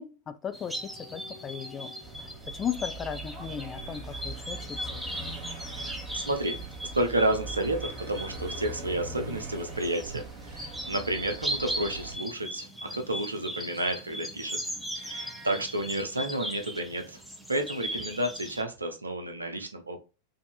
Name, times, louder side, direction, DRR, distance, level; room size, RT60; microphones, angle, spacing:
voice 1, 0.0-1.9 2.2-2.3 2.5-4.7, left 8 dB, 25° left, 0.5 m, -36 dB
sound 1, 0.5-18.6, equal, ahead, 0.8 m, -39 dB
sound 2, 2.0-12.1, right 2 dB, 30° right, 1.7 m, -41 dB
voice 2, 6.1-6.6 6.9-14.6 15.0-17.2 17.5-20.0, right 1 dB, 80° right, 0.8 m, -31 dB
5.4 x 2.8 x 2.3 m
figure-of-eight pair, 90°, 0 cm